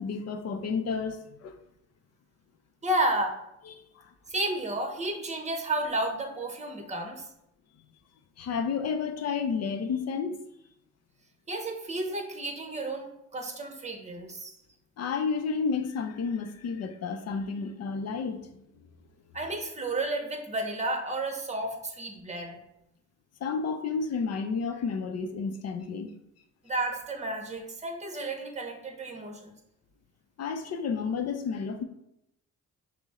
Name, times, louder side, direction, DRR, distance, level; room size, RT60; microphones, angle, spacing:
voice 1, 0.0-1.5 3.7-4.0 8.4-10.4 15.0-18.6 23.4-26.1 30.4-31.8, left 5 dB, 55° left, 0.6 m, -31 dB
voice 2, 2.8-3.4 4.3-7.3 11.5-14.6 19.3-22.6 26.6-29.5, right 1 dB, 25° right, 0.9 m, -32 dB
5.9 x 2.1 x 4.2 m
cardioid pair, 90°, 30 cm